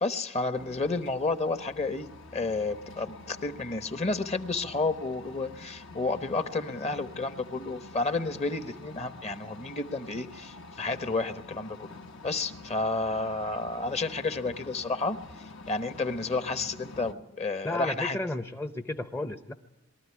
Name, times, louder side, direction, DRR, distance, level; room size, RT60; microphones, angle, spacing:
voice 1, 0.0-2.1 2.3-11.9 12.2-15.2 15.7-18.2, left 3 dB, 30° left, 10 dB, 1.0 m, -31 dB
sound 1, 0.5-17.1, left 3 dB, 65° left, 1.2 m, -47 dB
voice 2, 17.6-19.5, left 1 dB, 10° left, 7 dB, 0.7 m, -33 dB
23.0 x 13.5 x 9.6 m, 1.0 s
head